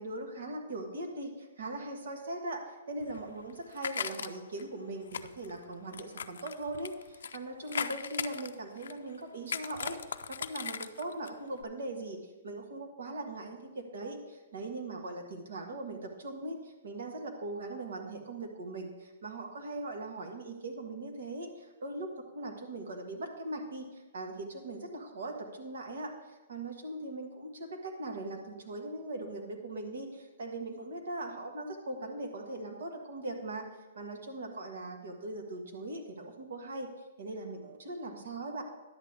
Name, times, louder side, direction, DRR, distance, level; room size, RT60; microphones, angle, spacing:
voice 1, 0.0-26.1 26.5-33.6 33.9-36.9 37.2-38.6, right 2 dB, 70° right, 3 dB, 1.6 m, -40 dB
sound 1, 3.0-4.6 5.1-7.4 7.7-9.1 9.5-11.3 11.6-11.7, left 7 dB, 80° left, 0.4 m, -38 dB
10.5 x 8.0 x 3.5 m, 1.2 s
hypercardioid pair, 175°, 0 cm